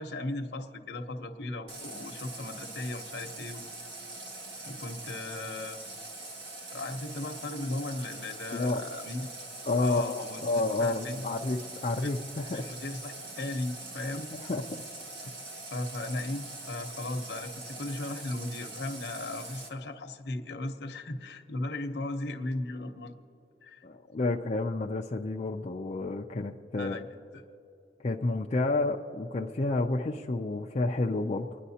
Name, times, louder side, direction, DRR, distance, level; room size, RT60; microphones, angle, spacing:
voice 1, 0.0-3.6 4.6-5.8 6.7-9.3 9.8-10.4 10.8-11.3 12.0-12.1 12.5-14.3 15.7-23.1 23.6-23.8 26.8-27.0, left 2 dB, 70° left, 5 dB, 0.9 m, -36 dB
Water tap faucet, 1.7-19.7, right 2 dB, 70° right, 1.5 m, -43 dB
voice 2, 8.5-8.8 9.7-12.7 14.3-14.6 23.8-27.1 28.0-31.6, left 2 dB, 40° left, 0 dB, 0.5 m, -30 dB
29.5 x 10.0 x 2.8 m, 2.9 s
head